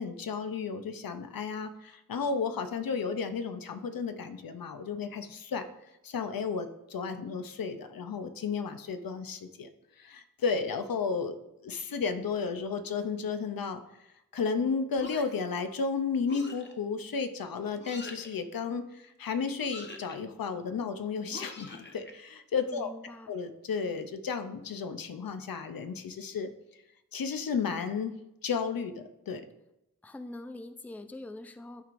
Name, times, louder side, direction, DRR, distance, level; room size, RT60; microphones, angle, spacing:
voice 1, 0.0-5.7 6.0-9.7 10.0-11.4 11.6-13.8 14.3-22.9 23.3-26.5 27.1-28.2 28.4-29.4, left 5 dB, 85° left, 8 dB, 0.7 m, -33 dB
sound 1, 15.0-15.5 16.3-16.7 17.8-18.3 19.6-20.2 21.3-22.1, left 2 dB, 35° left, 0.9 m, -44 dB
voice 2, 22.7-23.3 30.0-31.8, left 2 dB, 5° left, 9 dB, 0.4 m, -43 dB
11.5 x 4.7 x 2.5 m, 0.87 s
wide cardioid pair, 110°, 34 cm